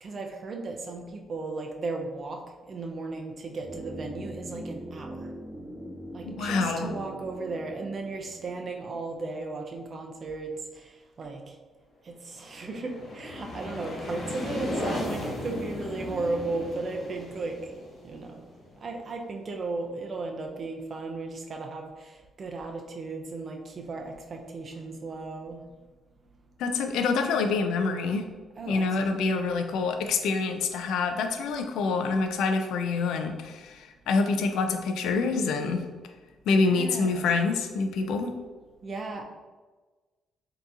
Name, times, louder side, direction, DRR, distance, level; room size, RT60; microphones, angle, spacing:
voice 1, 0.0-2.4 2.7-5.3 6.1-10.9 11.2-11.5 12.1-17.6 18.0-18.4 18.8-25.6 28.6-29.1 36.5-37.3 38.8-39.2, right 3 dB, 45° right, 3 dB, 0.5 m, -35 dB
sound 1, 3.6-9.6 9.9-10.0, equal, 5° right, 0.6 m, -42 dB
voice 2, 6.3-6.9 26.6-28.2 28.7-35.8 36.5-38.3, left 4 dB, 85° left, 6 dB, 0.3 m, -26 dB
sound 2, 12.3-19.1, left 1 dB, 55° left, 0.9 m, -36 dB
3.7 x 2.8 x 2.4 m, 1.3 s
cardioid pair, 90°, 0 cm